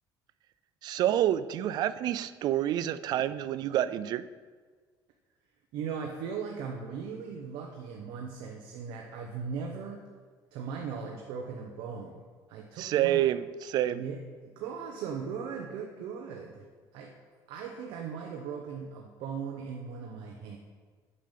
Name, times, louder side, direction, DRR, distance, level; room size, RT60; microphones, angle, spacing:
voice 1, 0.8-4.3 12.8-14.0, right 12 dB, 55° right, 15 dB, 0.4 m, -28 dB
voice 2, 5.7-10.0 10.5-12.2 12.5-13.2 13.9-14.2 14.6-16.7 16.9-17.1 17.5-20.6, right 6 dB, 80° right, 1 dB, 1.0 m, -38 dB
8.4 x 5.6 x 7.5 m, 1.5 s
cardioid pair, 160°, 8 cm